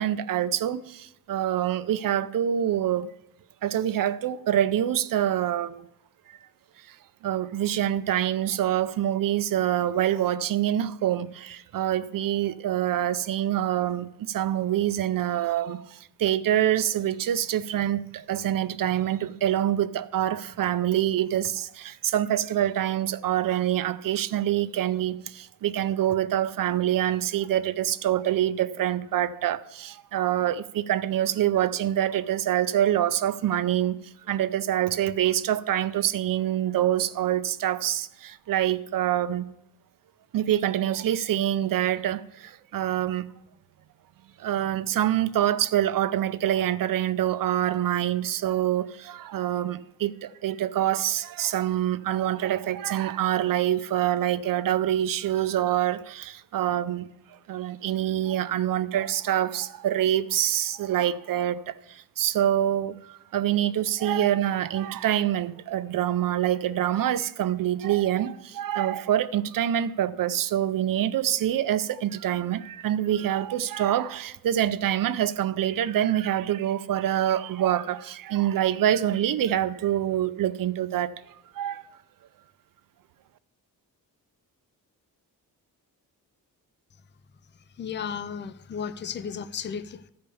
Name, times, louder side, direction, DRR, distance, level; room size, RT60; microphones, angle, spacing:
voice 1, 0.0-3.1 3.6-5.8 6.3-6.4 6.9-7.0 7.2-34.0 34.3-39.4 40.3-43.3 44.4-57.1 57.5-81.1 81.5-81.9, right 11 dB, 65° right, 0.6 m, -26 dB
voice 2, 87.8-90.1, left 7 dB, 30° left, 0.4 m, -34 dB
13.5 x 5.2 x 6.9 m
wide cardioid pair, 165°, 37 cm